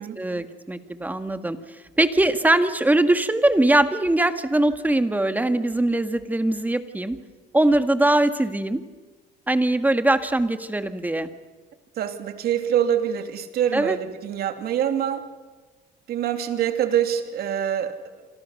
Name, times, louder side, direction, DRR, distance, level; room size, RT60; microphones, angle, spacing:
voice 1, 0.2-1.6 2.0-7.2 7.5-8.8 9.5-11.3 13.7-14.0, right 1 dB, 10° right, 9 dB, 1.9 m, -21 dB
voice 2, 12.0-15.2 16.1-18.0, right 9 dB, 65° right, 7 dB, 2.9 m, -25 dB
27.5 x 26.5 x 6.6 m, 1.3 s
cardioid pair, 110°, 17 cm